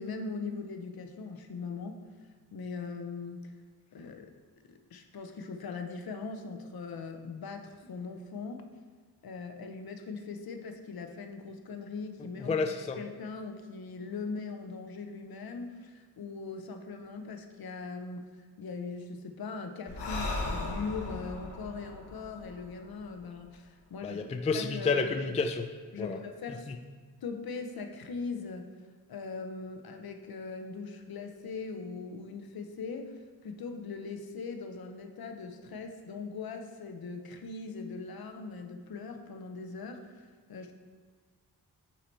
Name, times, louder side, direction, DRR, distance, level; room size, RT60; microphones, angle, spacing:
voice 1, 0.0-2.0 2.5-3.5 3.9-4.3 4.7-8.6 9.2-12.6 12.9-18.3 18.6-24.2 24.5-25.1 25.9-26.7 27.2-28.7 29.1-40.7, left 4 dB, 60° left, 5 dB, 0.7 m, -40 dB
voice 2, 12.5-13.0 24.0-25.7 26.0-26.2, left 4 dB, 20° left, 7 dB, 0.3 m, -30 dB
Breathing, 19.9-23.4, left 2 dB, 80° left, 1.2 m, -37 dB
8.2 x 2.8 x 4.4 m, 1.5 s
cardioid pair, 70°, 40 cm